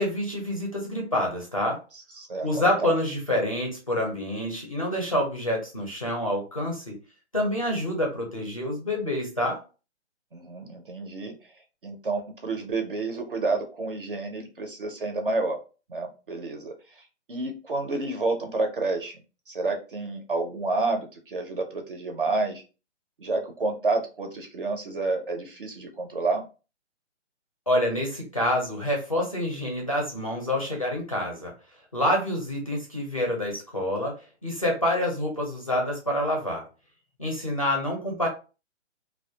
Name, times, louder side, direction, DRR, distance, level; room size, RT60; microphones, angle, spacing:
voice 1, 0.0-1.8 2.4-7.0 7.3-9.6 27.7-31.5 31.9-36.7 37.2-38.3, left 1 dB, 30° left, -1 dB, 0.4 m, -27 dB
voice 2, 2.2-2.7 10.3-11.4 11.8-15.6 15.9-17.0 17.3-19.2 19.5-22.6 23.2-26.4, right 3 dB, 50° right, 4 dB, 0.4 m, -29 dB
2.2 x 2.1 x 2.6 m, 0.33 s
hypercardioid pair, 180°, 35 cm